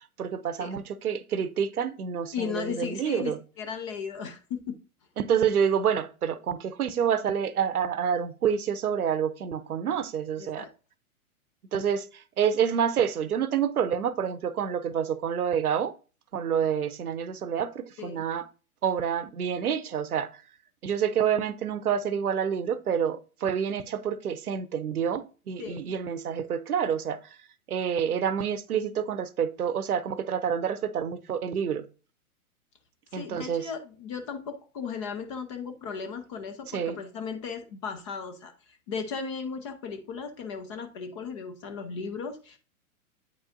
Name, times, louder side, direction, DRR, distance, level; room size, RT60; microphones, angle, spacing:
voice 1, 0.2-3.4 5.2-10.7 11.7-15.9 16.3-18.5 18.8-20.4 20.8-27.2 27.7-31.8 33.1-33.7 36.7-37.0, right 8 dB, 85° right, 0.7 m, -28 dB
voice 2, 2.3-4.8 10.4-10.7 18.0-18.2 25.6-25.9 33.1-42.6, left 6 dB, 25° left, 0.4 m, -36 dB
8.4 x 4.7 x 2.5 m
figure-of-eight pair, 110°, 44 cm